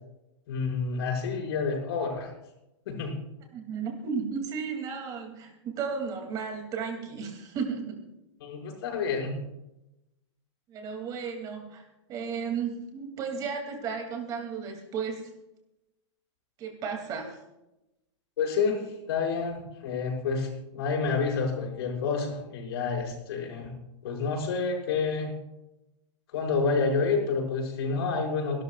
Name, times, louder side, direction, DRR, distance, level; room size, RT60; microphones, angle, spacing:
voice 1, 0.5-2.3 2.9-3.1 8.4-9.3 18.4-23.7 24.0-25.3 26.3-28.6, left 4 dB, 55° left, 0 dB, 6.3 m, -29 dB
voice 2, 3.5-8.0 10.7-11.8 12.1-15.2 16.6-17.4, right 6 dB, 25° right, 3 dB, 2.8 m, -34 dB
29.5 x 12.5 x 2.5 m, 0.94 s
supercardioid pair, 165°, 15 cm